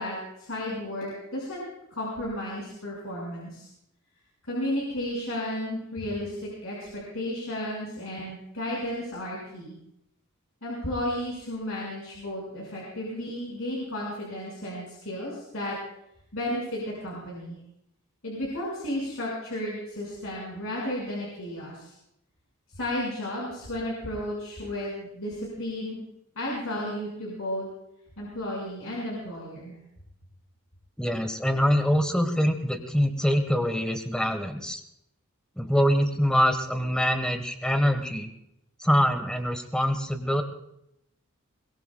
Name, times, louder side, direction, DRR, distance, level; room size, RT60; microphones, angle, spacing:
voice 1, 0.0-1.6 1.9-3.7 4.5-9.8 10.6-15.8 16.3-17.6 18.2-21.9 22.7-26.0 26.4-27.7 28.2-29.8, left 1 dB, 70° left, -5 dB, 5.6 m, -33 dB
voice 2, 31.0-34.8 35.6-38.3 38.8-40.4, equal, 5° left, 6 dB, 1.3 m, -24 dB
22.5 x 21.0 x 2.3 m, 0.79 s
head